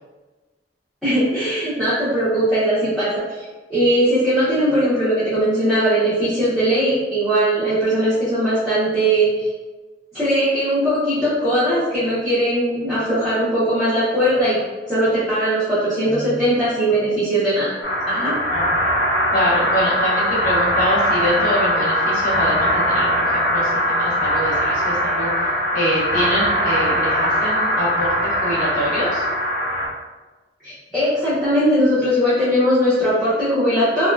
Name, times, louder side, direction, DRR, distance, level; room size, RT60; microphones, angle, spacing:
voice 1, 1.0-9.5 10.1-14.6 14.9-17.7 18.1-18.4 30.6-34.1, equal, ahead, -14 dB, 0.9 m, -19 dB
sound 1, 17.8-29.9, equal, 85° left, 0.8 m, -20 dB
voice 2, 18.5-18.9 19.3-25.5 25.7-29.2, equal, 50° left, -7 dB, 1.0 m, -25 dB
3.7 x 2.2 x 2.3 m, 1.2 s
head